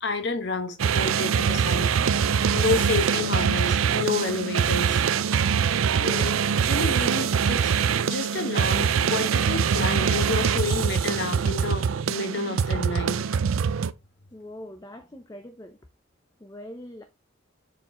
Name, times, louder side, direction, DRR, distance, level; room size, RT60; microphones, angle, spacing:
voice 1, 0.0-1.9 2.5-5.0 6.0-6.4 6.6-7.6 8.0-13.2, left 3 dB, 55° left, 1.2 m, -29 dB
sound 1, 0.8-13.9, right 7 dB, 85° right, 0.4 m, -23 dB
voice 2, 14.3-15.8 16.4-17.0, left 1 dB, 15° left, 0.6 m, -42 dB
6.7 x 4.5 x 3.7 m
head